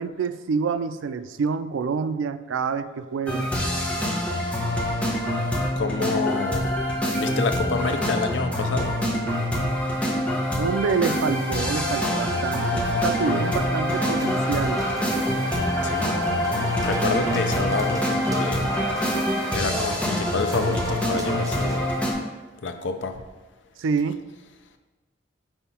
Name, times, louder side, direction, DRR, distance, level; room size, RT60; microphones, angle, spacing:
voice 1, 0.0-3.5 10.6-14.8 23.8-24.2, right 5 dB, 90° right, 12 dB, 0.4 m, -27 dB
sound 1, 3.3-22.1, equal, 5° left, 0.9 m, -25 dB
voice 2, 5.8-6.6 7.1-8.9 12.9-13.0 15.9-16.2 16.5-18.6 19.5-21.8 22.6-23.1, left 4 dB, 65° left, 7 dB, 0.6 m, -28 dB
sound 2, 13.9-21.8, right 1 dB, 20° right, 0.6 m, -36 dB
5.6 x 4.5 x 4.3 m, 1.3 s
head